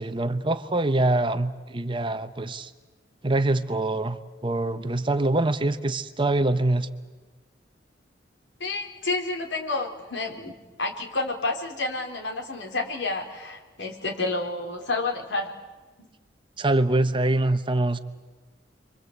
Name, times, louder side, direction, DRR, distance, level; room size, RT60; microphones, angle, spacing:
voice 1, 0.0-2.7 3.2-6.9 16.6-18.0, right 2 dB, 25° right, 10 dB, 1.0 m, -24 dB
voice 2, 8.6-15.5 16.0-16.1, left 3 dB, 75° left, 2 dB, 4.4 m, -30 dB
30.0 x 24.0 x 8.2 m, 1.3 s
head